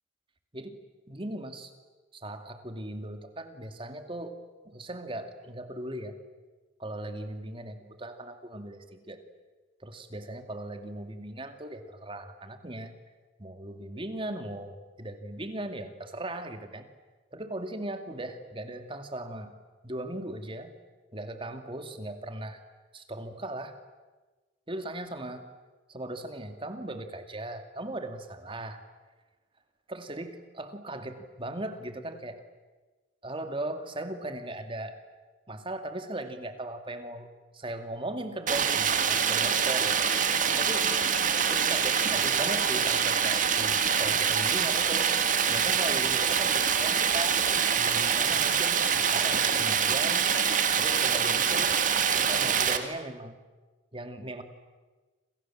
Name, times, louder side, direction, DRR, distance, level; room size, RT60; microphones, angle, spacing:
voice 1, 1.1-1.7 2.1-4.4 4.6-6.2 6.8-9.2 9.8-12.9 13.4-16.9 17.3-19.5 19.8-20.7 21.1-22.6 22.9-23.8 24.7-25.5 25.9-28.8 29.9-32.4 33.2-35.0 35.5-37.3 37.5-40.0 40.6-40.9 41.5-45.1 45.5-47.4 47.8-50.3 50.8-51.8 52.2-53.4 53.9-54.4, right 1 dB, 30° right, 7 dB, 2.5 m, -38 dB
Stream, 38.5-52.8, right 7 dB, 45° right, 2.1 m, -25 dB
28.5 x 27.5 x 7.5 m, 1.3 s
head